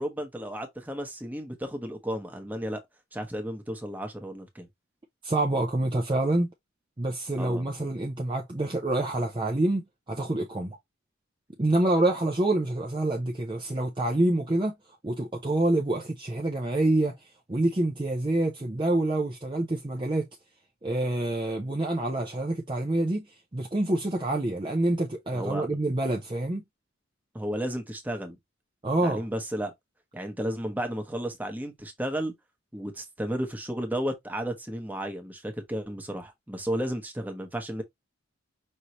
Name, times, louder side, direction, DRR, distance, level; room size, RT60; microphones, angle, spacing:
voice 1, 0.0-2.8 3.1-4.7 7.4-7.7 25.3-25.7 27.3-28.4 29.0-29.7 30.1-32.3 32.7-37.8, equal, 10° right, 1.0 m, -33 dB
voice 2, 5.2-6.5 7.0-9.8 10.1-10.8 11.6-14.7 15.0-17.2 17.5-20.3 20.8-23.3 23.5-26.6 28.8-29.3, right 1 dB, 25° right, 0.6 m, -27 dB
5.5 x 2.8 x 3.0 m
head